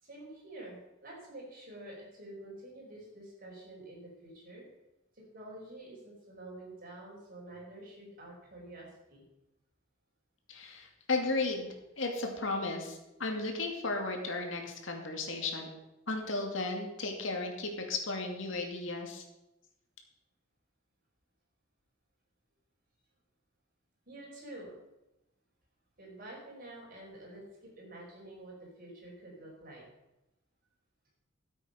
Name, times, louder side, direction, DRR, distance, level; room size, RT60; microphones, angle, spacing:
voice 1, 0.0-4.6 5.3-9.2 24.1-24.8 26.0-29.8, right 1 dB, 45° right, -3 dB, 5.5 m, -48 dB
voice 2, 10.5-15.7 16.1-19.2, left 3 dB, 70° left, 2 dB, 2.3 m, -35 dB
13.5 x 8.2 x 5.8 m, 0.94 s
head